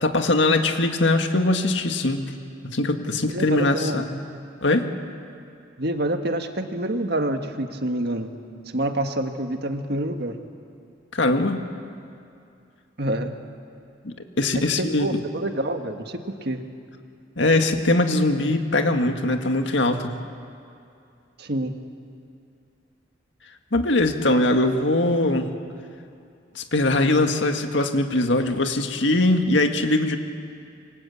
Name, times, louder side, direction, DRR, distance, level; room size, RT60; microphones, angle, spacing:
voice 1, 0.0-2.2 2.6-4.1 4.6-4.9 11.1-11.6 14.0-15.2 17.4-20.2 23.7-25.5 26.5-30.2, left 2 dB, 70° left, 5 dB, 1.9 m, -21 dB
voice 2, 3.2-4.0 5.8-8.3 8.7-10.4 13.0-13.4 14.5-16.6 21.4-21.7, right 1 dB, 55° right, 6 dB, 1.7 m, -27 dB
27.5 x 23.5 x 8.5 m, 2.5 s
head